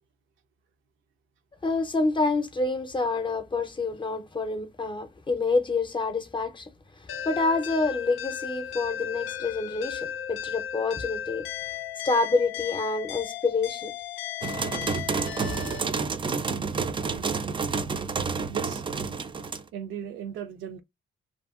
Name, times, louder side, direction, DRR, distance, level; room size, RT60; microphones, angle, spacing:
voice 1, 1.6-6.7 7.0-11.5 12.0-13.9, left 3 dB, 25° left, 0.6 m, -27 dB
sound 1, 7.1-15.8, left 10 dB, 85° left, 0.4 m, -36 dB
sound 2, 14.4-19.6, right 5 dB, 25° right, 0.4 m, -29 dB
voice 2, 18.5-18.9 19.7-20.8, right 9 dB, 80° right, 0.5 m, -36 dB
2.6 x 2.6 x 2.3 m
cardioid pair, 90°, 20 cm